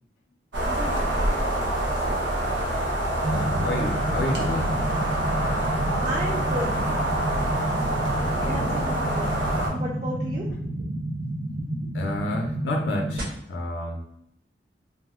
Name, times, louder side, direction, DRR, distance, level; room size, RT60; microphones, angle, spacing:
sound 1, 0.5-9.7, right 1 dB, 90° right, 0.8 m, -26 dB
voice 1, 0.7-1.4 6.0-6.8 8.4-9.4 9.7-10.5, equal, 30° right, -5 dB, 0.4 m, -33 dB
voice 2, 3.0-4.8 5.6-5.7 8.2-8.7 11.9-14.0, left 2 dB, 80° left, 0 dB, 0.4 m, -31 dB
sound 2, 3.2-13.2, right 1 dB, 50° right, 0.7 m, -30 dB
2.5 x 2.0 x 3.5 m, 0.75 s
head